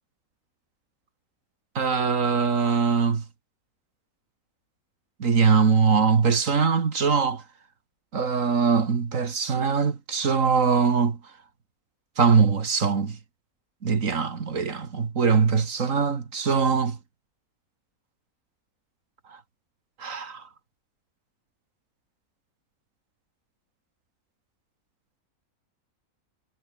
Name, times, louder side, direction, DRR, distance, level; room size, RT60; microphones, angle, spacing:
voice 1, 1.8-3.2 5.2-7.4 8.1-11.2 12.2-13.2 13.8-17.0 20.0-20.4, right 5 dB, 60° right, 2.1 m, -22 dB
omnidirectional pair, 1.6 m